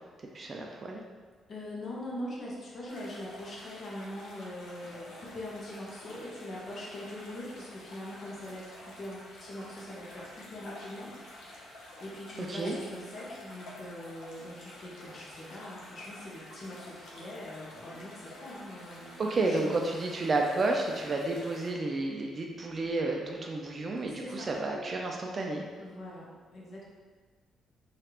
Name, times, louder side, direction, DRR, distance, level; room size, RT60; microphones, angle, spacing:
voice 1, 0.3-1.0 12.4-12.8 19.2-25.6, right 2 dB, 35° right, 1 dB, 0.3 m, -31 dB
voice 2, 1.5-11.1 11.5-11.7 12.0-19.8 24.1-24.5 25.8-26.9, left 1 dB, 45° left, -4 dB, 0.8 m, -42 dB
sound 1, 2.9-21.7, left 1 dB, 75° left, 0.7 m, -49 dB
3.2 x 2.4 x 2.9 m, 1.5 s
cardioid pair, 120°, 0 cm